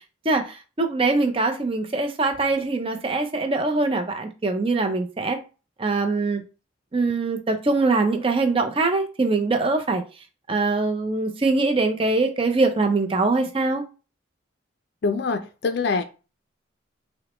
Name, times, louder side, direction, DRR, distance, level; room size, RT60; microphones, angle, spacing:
voice 1, 0.2-5.4 5.8-6.4 6.9-10.0 10.5-13.8, right 3 dB, 25° right, 5 dB, 0.5 m, -23 dB
voice 2, 15.0-16.0, left 4 dB, 55° left, 8 dB, 0.4 m, -24 dB
6.0 x 2.1 x 3.0 m, 0.33 s
head